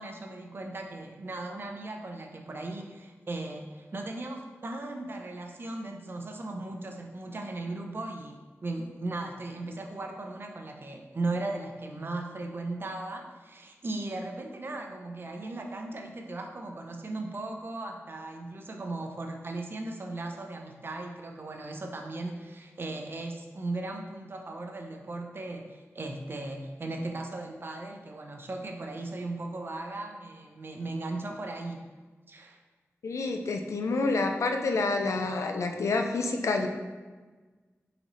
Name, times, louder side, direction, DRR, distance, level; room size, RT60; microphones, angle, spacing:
voice 1, 0.0-31.8 32.3-32.6, right 2 dB, 45° right, 3 dB, 0.5 m, -37 dB
voice 2, 33.0-36.7, left 3 dB, 85° left, 4 dB, 0.4 m, -28 dB
4.0 x 3.9 x 3.0 m, 1.3 s
wide cardioid pair, 110°, 5 cm